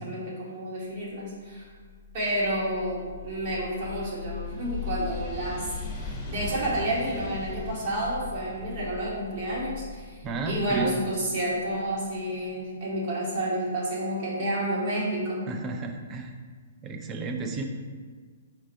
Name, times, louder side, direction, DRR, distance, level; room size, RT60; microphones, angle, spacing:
voice 1, 0.0-1.7 2.1-15.5, right 1 dB, 50° right, -6 dB, 1.3 m, -30 dB
sound 1, 1.6-12.4, left 5 dB, 20° left, 0.7 m, -39 dB
voice 2, 10.2-11.0 15.5-16.3 16.8-17.6, right 3 dB, 25° right, 4 dB, 0.5 m, -32 dB
4.6 x 2.5 x 4.3 m, 1.6 s
hypercardioid pair, 125°, 0 cm